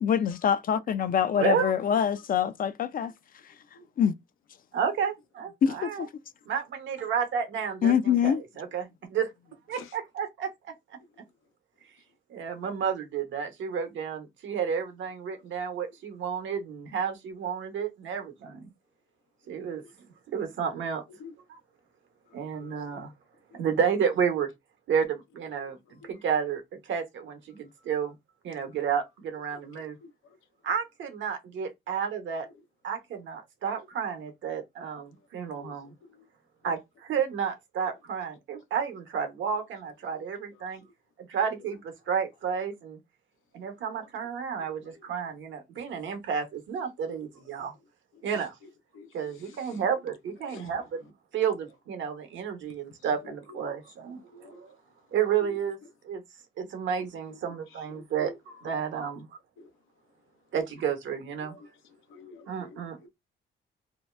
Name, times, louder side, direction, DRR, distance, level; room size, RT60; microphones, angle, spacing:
voice 1, 0.0-3.1 4.0-4.1 5.6-6.1 7.8-8.4, left 8 dB, 45° left, 0.4 m, -25 dB
voice 2, 1.3-1.7 4.7-6.1 6.5-9.3 9.7-10.5 10.9-11.0 12.3-18.7 19.5-19.8 20.3-21.0 21.5-21.6 22.3-23.1 23.5-24.5 24.9-28.1 28.4-30.0 30.6-32.5 32.8-35.9 36.6-40.8 41.3-43.0 43.5-47.7 48.2-48.6 49.1-54.2 54.5-54.8 55.1-55.8 56.0-56.2 56.6-59.3 60.5-61.5 62.5-63.1, right 7 dB, 70° right, 0.9 m, -31 dB
voice 3, 57.9-58.3 59.6-59.7 61.4-61.6 62.1-63.1, left 3 dB, 90° left, 0.7 m, -48 dB
2.7 x 2.2 x 3.2 m
cardioid pair, 90°, 20 cm